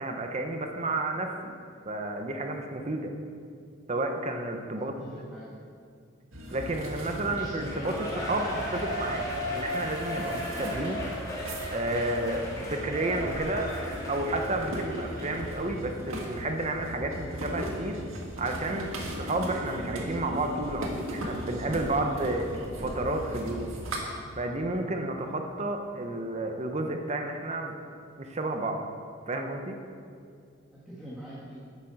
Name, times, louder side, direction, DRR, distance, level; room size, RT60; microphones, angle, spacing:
voice 1, 0.0-1.5 1.8-3.1 3.9-4.9 6.5-11.0 11.7-13.7 14.1-18.0 18.4-22.5 22.8-23.7 24.3-27.8 28.2-28.8 29.3-29.8, right 2 dB, 35° right, 4 dB, 0.9 m, -31 dB
voice 2, 4.7-5.5 7.3-7.6 30.7-31.6, equal, ahead, -8 dB, 1.7 m, -44 dB
sound 1, 6.3-24.0, equal, 90° right, 1.7 m, -38 dB
Shout / Cheering, 7.3-15.7 16.1-16.2, left 1 dB, 20° left, 2.2 m, -36 dB
10.5 x 8.4 x 5.9 m, 2.3 s
head